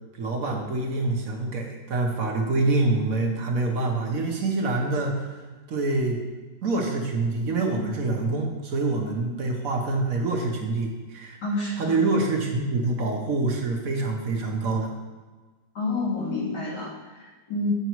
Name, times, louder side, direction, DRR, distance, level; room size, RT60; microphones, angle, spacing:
voice 1, 0.2-5.4 5.7-6.2 6.6-11.4 11.8-14.9, right 3 dB, 60° right, 1 dB, 1.3 m, -26 dB
voice 2, 11.4-12.0 15.7-17.7, left 2 dB, 90° left, -7 dB, 3.0 m, -29 dB
8.0 x 5.3 x 4.6 m, 1.3 s
omnidirectional pair, 1.8 m